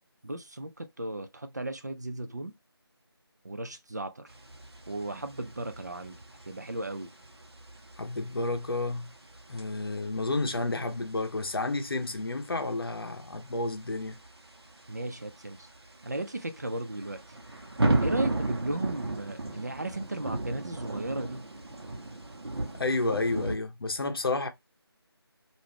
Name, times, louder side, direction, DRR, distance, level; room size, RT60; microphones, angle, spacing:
voice 1, 0.2-2.5 3.4-4.3 4.9-7.1 14.9-15.7 16.0-17.2 18.0-21.5, right 1 dB, 40° right, 0.3 m, -36 dB
sound 1, 4.3-23.6, right 2 dB, 70° right, 0.9 m, -36 dB
voice 2, 8.0-9.1 9.5-14.2 22.8-24.5, left 2 dB, 60° left, 0.6 m, -31 dB
2.5 x 2.2 x 3.3 m
figure-of-eight pair, 170°, 14 cm